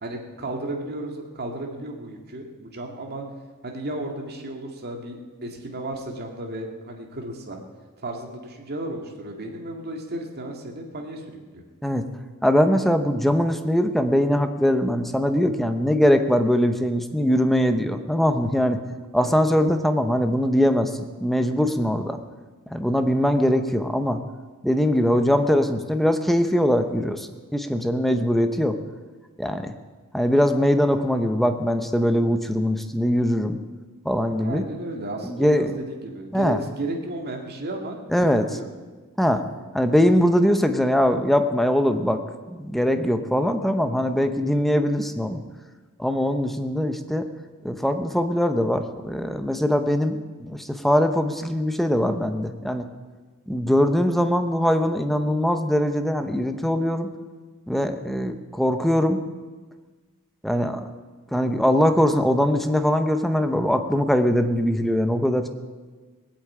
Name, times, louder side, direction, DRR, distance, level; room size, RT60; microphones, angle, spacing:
voice 1, 0.0-3.2 3.6-7.6 8.0-11.6 34.4-38.7, right 1 dB, 45° right, 2 dB, 2.2 m, -34 dB
voice 2, 12.4-18.8 19.1-20.9 21.2-22.2 22.7-24.2 24.6-28.8 29.4-29.7 30.1-33.6 34.0-34.6 35.2-35.7 36.3-36.6 38.1-38.4 39.2-39.4 39.7-42.2 42.5-45.4 46.0-47.3 47.6-52.8 53.5-57.1 57.7-59.2 60.4-60.8 61.3-65.5, equal, ahead, 7 dB, 0.8 m, -21 dB
18.5 x 8.5 x 8.6 m, 1.4 s
head